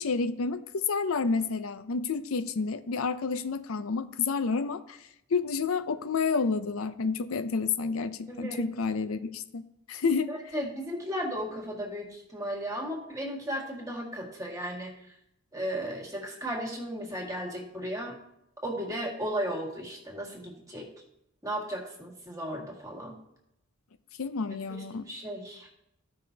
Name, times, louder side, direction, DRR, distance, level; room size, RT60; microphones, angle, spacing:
voice 1, 0.0-5.0 5.3-9.6 9.9-10.3 24.2-25.1, left 4 dB, 85° left, 11 dB, 0.5 m, -29 dB
voice 2, 8.3-8.6 10.3-14.9 15.5-18.2 18.6-20.9 21.4-23.2 24.7-25.7, equal, 15° right, -1 dB, 1.8 m, -35 dB
14.5 x 5.5 x 2.8 m, 0.81 s
head